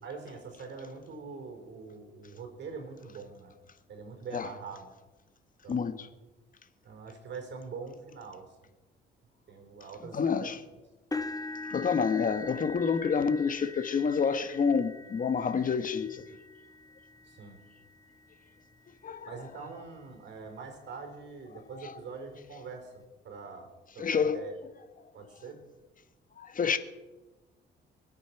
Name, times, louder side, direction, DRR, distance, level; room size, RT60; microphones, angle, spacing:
voice 1, 0.0-3.5 3.9-4.9 5.6-6.0 6.8-8.5 9.5-10.5 17.2-17.6 19.3-24.6 25.1-25.6, right 4 dB, 65° right, 4.1 m, -44 dB
voice 2, 5.7-6.1 10.1-10.6 11.7-16.2 19.0-19.3 21.8-21.9 24.0-24.5 26.4-26.8, left 6 dB, 45° left, 1.4 m, -28 dB
sound 1, 11.1-19.1 19.8-20.0 20.4-20.5 21.9-22.0, left 3 dB, 20° left, 1.1 m, -42 dB
23.5 x 8.5 x 5.9 m
cardioid pair, 90°, 20 cm